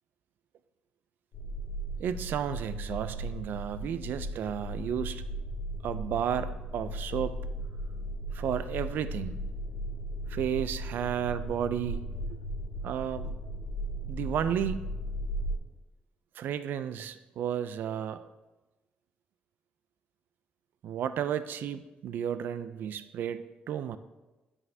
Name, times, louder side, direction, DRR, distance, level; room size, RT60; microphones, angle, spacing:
sound 1, 1.3-15.6, right 1 dB, 60° left, 1.6 m, -36 dB
voice 1, 2.0-5.2 5.8-7.4 8.3-9.4 10.3-12.0 12.8-13.3 14.1-14.8 16.4-18.3 20.8-24.0, right 9 dB, 65° right, 12 dB, 0.3 m, -33 dB
9.3 x 5.5 x 2.7 m, 1.1 s
cardioid pair, 135°, 4 cm